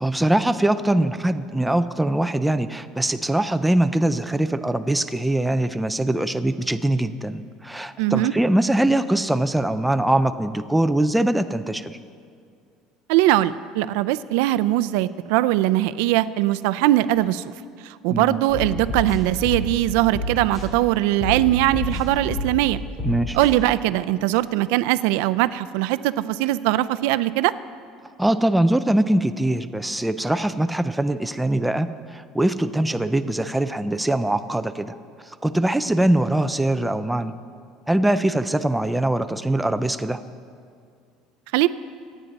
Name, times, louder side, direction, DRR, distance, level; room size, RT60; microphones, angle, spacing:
voice 1, 0.0-12.0 18.1-18.4 23.0-23.4 28.2-35.0 35.3-37.3 37.9-40.2, right 1 dB, 5° right, 9 dB, 0.4 m, -22 dB
voice 2, 8.0-8.3 13.1-17.4 17.8-22.8 23.3-27.5 41.5-41.7, right 15 dB, 80° right, 14 dB, 0.4 m, -21 dB
sound 1, 18.5-19.8 20.1-20.7 21.2-22.7 23.0-23.5, left 1 dB, 20° left, 2.8 m, -29 dB
25.0 x 9.1 x 4.0 m, 2.3 s
cardioid pair, 170°, 0 cm